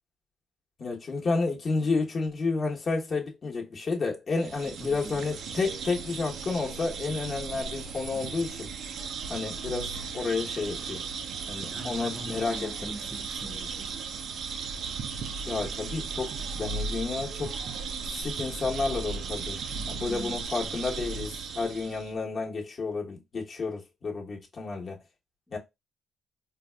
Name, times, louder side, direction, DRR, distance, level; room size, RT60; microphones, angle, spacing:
voice 1, 0.8-8.7 9.3-11.0 11.5-12.9 15.5-17.6 18.0-19.6 19.9-25.0 25.5-25.6, left 4 dB, 40° left, 1.0 m, -31 dB
sound 1, 4.3-22.1, right 5 dB, 65° right, 0.5 m, -36 dB
voice 2, 4.8-5.2 11.7-14.0 20.1-20.4, equal, ahead, 0.7 m, -43 dB
3.9 x 2.3 x 2.2 m
cardioid pair, 95°, 0 cm